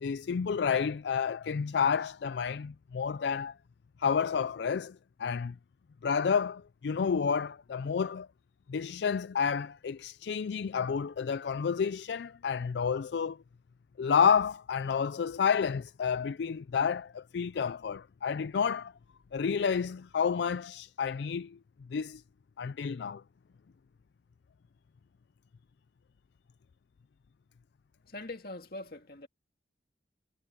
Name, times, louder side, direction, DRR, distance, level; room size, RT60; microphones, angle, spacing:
voice 1, 0.0-3.5 4.0-5.5 6.0-8.3 8.7-13.4 14.0-18.9 19.3-21.6 21.9-22.2 22.6-23.2, left 6 dB, 70° left, 0.4 m, -30 dB
voice 2, 28.1-29.3, left 2 dB, 55° left, 2.2 m, -42 dB
head